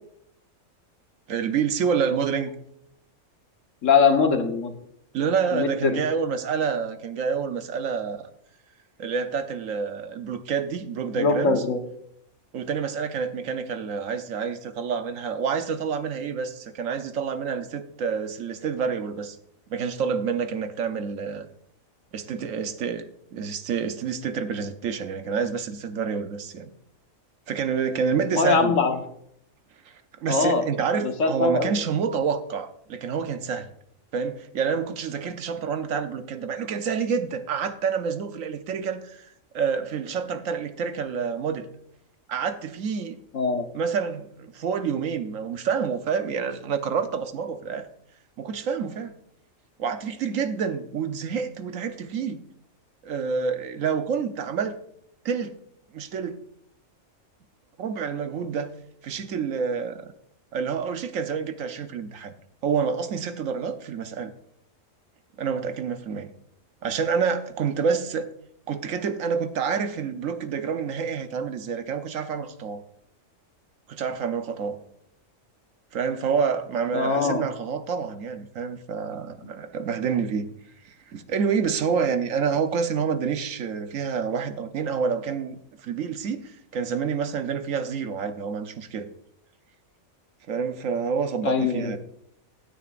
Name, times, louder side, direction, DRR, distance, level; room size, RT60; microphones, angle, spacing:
voice 1, 1.3-2.5 5.1-8.3 9.0-11.6 12.5-19.4 19.7-21.5 22.1-26.7 27.5-28.7 29.9-30.0 30.2-33.7 34.1-39.3 39.5-41.7 42.3-43.2 43.7-47.9 48.4-49.1 49.8-52.4 53.0-54.8 55.2-55.6 55.9-56.4 57.8-58.7 59.0-60.1 60.5-62.3 62.6-64.3 65.4-66.3 66.8-68.3 68.7-72.8 73.9-74.8 75.9-80.5 80.8-89.1 90.5-92.0, right 6 dB, 75° right, 9 dB, 1.2 m, -28 dB
voice 2, 3.8-4.7 5.5-6.0 11.1-11.8 28.3-29.0 30.3-30.6 31.0-31.7 43.3-43.6 76.9-77.4 91.4-91.9, left 5 dB, 70° left, 5 dB, 1.6 m, -22 dB
16.0 x 8.9 x 2.5 m, 0.71 s
omnidirectional pair, 1.4 m